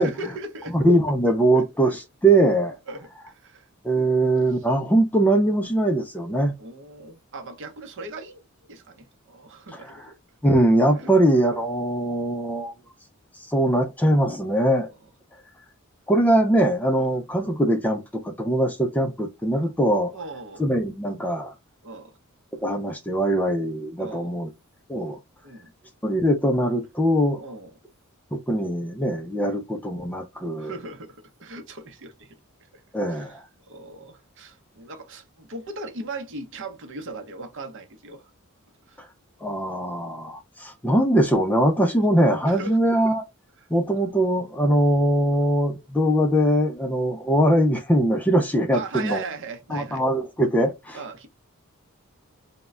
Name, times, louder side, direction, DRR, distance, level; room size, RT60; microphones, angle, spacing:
voice 1, 0.0-0.8 1.5-2.0 2.9-3.7 3.9-4.1 6.6-10.1 11.0-11.1 17.0-17.1 19.6-19.7 20.1-20.7 21.8-22.2 24.0-24.3 25.4-25.7 27.4-27.7 29.4-29.6 30.6-32.8 33.1-38.3 38.9-39.0 42.0-42.1 42.4-42.8 43.6-43.7 45.3-45.4 48.7-50.0 50.9-51.3, right 3 dB, 60° right, 0.7 m, -38 dB
voice 2, 0.7-2.8 3.8-6.5 9.7-10.0 10.4-12.7 13.5-14.9 16.1-20.2 20.6-21.5 22.6-24.5 24.9-25.2 26.0-27.4 28.3-30.7 32.9-33.4 39.0-39.1 39.4-43.2 43.7-49.2 49.7-51.0, right 1 dB, 5° left, 0.3 m, -21 dB
2.2 x 2.1 x 3.5 m
head